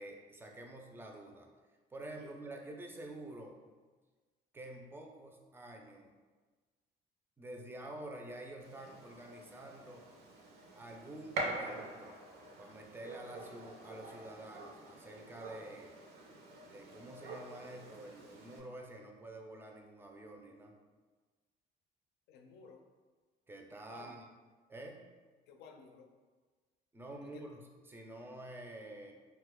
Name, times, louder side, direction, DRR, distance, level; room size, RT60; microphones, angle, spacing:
voice 1, 0.0-1.5 1.9-3.6 4.5-6.1 7.4-10.0 10.8-12.2 12.6-16.0 16.6-20.8 23.5-24.3 24.7-25.1 26.9-29.1, right 1 dB, 15° right, 2 dB, 0.4 m, -48 dB
Gunshot gunfire, 8.6-18.6, right 2 dB, 70° right, 0.6 m, -46 dB
voice 2, 22.3-22.8 23.9-24.3 25.5-26.1 27.2-27.4, left 5 dB, 80° left, 4 dB, 0.5 m, -55 dB
2.7 x 2.2 x 3.4 m, 1.3 s
cardioid pair, 110°, 17 cm